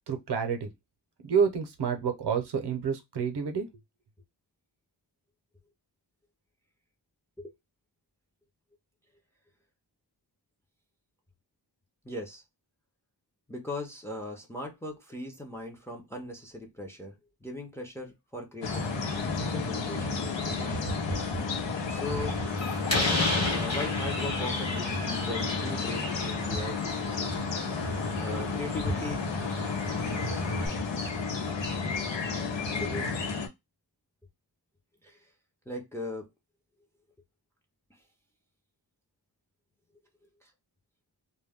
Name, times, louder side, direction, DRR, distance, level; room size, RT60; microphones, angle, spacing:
voice 1, 0.1-0.7 1.2-3.7, right 6 dB, 65° right, 0.7 m, -28 dB
voice 2, 12.0-12.4 13.5-20.9 21.9-22.4 23.4-27.4 28.2-29.2 32.8-33.1 35.0-35.3 35.7-36.3 40.4-40.5, left 2 dB, 5° left, 0.5 m, -39 dB
sound 1, 18.6-33.5, left 3 dB, 90° left, 0.8 m, -32 dB
sound 2, 18.8-23.8, left 7 dB, 65° left, 0.6 m, -45 dB
Slam, 22.1-30.7, left 2 dB, 40° left, 1.0 m, -34 dB
2.2 x 2.2 x 3.4 m
wide cardioid pair, 140°, 42 cm